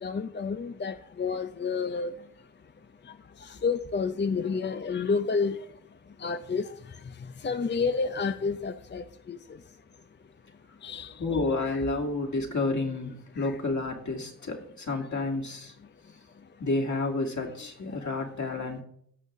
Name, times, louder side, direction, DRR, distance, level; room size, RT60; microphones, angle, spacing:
voice 1, 0.0-2.1 3.4-5.6 6.2-6.7 7.4-9.4 10.8-11.1 11.6-11.8 13.4-13.5, left 5 dB, 30° left, 10 dB, 0.6 m, -30 dB
voice 2, 11.2-15.7 16.6-18.8, left 3 dB, 55° left, 0 dB, 2.5 m, -30 dB
16.5 x 6.6 x 3.7 m, 0.67 s
cardioid pair, 55°, 35 cm